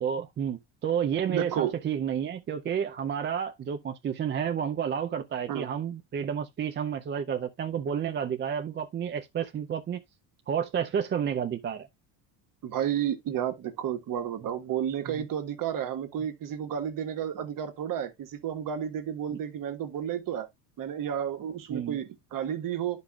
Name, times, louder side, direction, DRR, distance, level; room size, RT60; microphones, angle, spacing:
voice 1, 0.0-10.0 10.5-11.9 15.2-15.3 19.3-19.4 21.7-22.0, right 8 dB, 25° right, 0.5 m, -30 dB
voice 2, 1.3-1.7 5.5-5.7 12.6-20.5 20.8-23.0, right 9 dB, 45° right, 1.4 m, -32 dB
11.5 x 5.3 x 2.3 m
cardioid pair, 145°, 46 cm